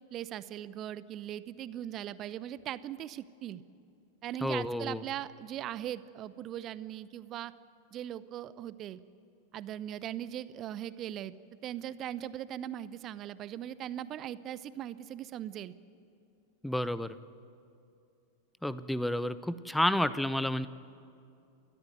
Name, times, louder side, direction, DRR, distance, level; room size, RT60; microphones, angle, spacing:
voice 1, 0.1-3.6 4.2-7.5 7.9-9.0 9.5-11.3 11.6-15.7, right 11 dB, 35° right, 17 dB, 0.8 m, -39 dB
voice 2, 4.4-5.0 16.6-17.1 18.6-20.7, left 1 dB, 5° left, 15 dB, 0.8 m, -30 dB
29.5 x 13.5 x 9.4 m, 2.5 s
figure-of-eight pair, 90°, 0 cm